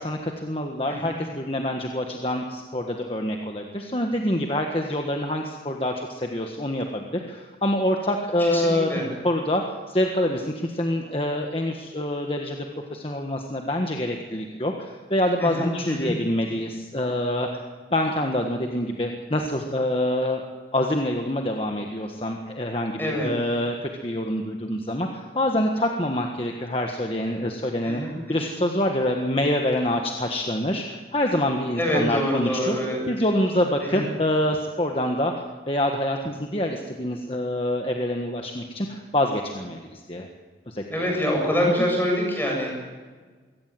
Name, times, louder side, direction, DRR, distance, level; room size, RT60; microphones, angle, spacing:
voice 1, 0.0-8.9 9.2-9.6 9.9-12.6 12.9-17.6 17.9-20.5 20.7-28.0 28.3-32.8 33.1-35.3 35.7-40.3 40.7-41.1, left 1 dB, 30° left, 2 dB, 1.5 m, -26 dB
voice 2, 8.4-9.1 15.4-16.1 23.0-23.3 27.8-28.1 28.4-28.5 31.8-33.0 33.8-34.0 40.9-42.7, equal, 10° left, 0 dB, 7.5 m, -25 dB
23.5 x 17.5 x 7.7 m, 1.4 s
head